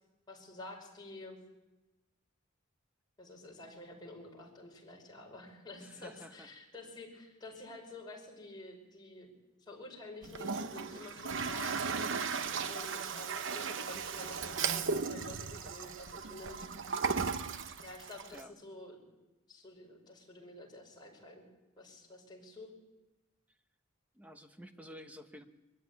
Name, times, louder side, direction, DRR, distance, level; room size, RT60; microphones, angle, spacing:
voice 1, 0.3-1.4 3.2-9.3 9.7-11.8 12.7-16.7 17.8-19.1 19.5-21.5 21.8-22.7, left 2 dB, 20° left, -3 dB, 5.6 m, -49 dB
voice 2, 5.8-6.5 18.3-18.5 24.1-25.5, equal, 5° right, 6 dB, 1.2 m, -51 dB
Toilet flush, 10.2-18.4, right 5 dB, 65° right, 0.9 m, -36 dB
23.0 x 14.0 x 9.6 m, 1.0 s
head